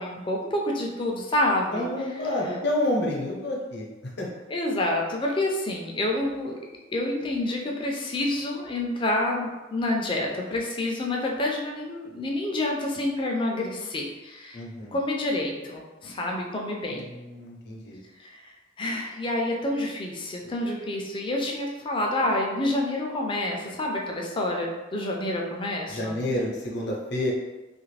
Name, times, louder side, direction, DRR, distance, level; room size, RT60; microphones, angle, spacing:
voice 1, 0.0-1.9 4.5-6.6 6.9-14.6 14.9-17.1 18.2-18.5 18.8-26.2, left 1 dB, 25° left, 0 dB, 0.4 m, -28 dB
voice 2, 1.7-4.3 14.5-15.0 16.9-18.0 25.9-27.3, left 1 dB, 60° left, -2 dB, 0.7 m, -29 dB
3.0 x 2.5 x 3.2 m, 1.2 s
head